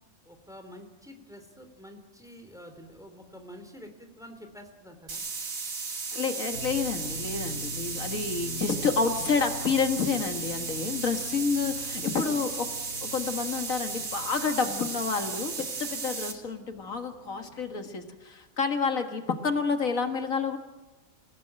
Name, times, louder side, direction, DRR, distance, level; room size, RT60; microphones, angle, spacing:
voice 1, 0.3-5.2, equal, ahead, 5 dB, 3.3 m, -48 dB
sound 1, 5.1-16.3, right 4 dB, 80° right, 2.5 m, -35 dB
voice 2, 6.1-12.7 13.0-20.6, left 5 dB, 75° left, 5 dB, 2.1 m, -29 dB
sound 2, 6.5-17.7, left 1 dB, 65° right, 5.3 m, -44 dB
29.0 x 17.0 x 8.9 m, 1.1 s
omnidirectional pair, 1.4 m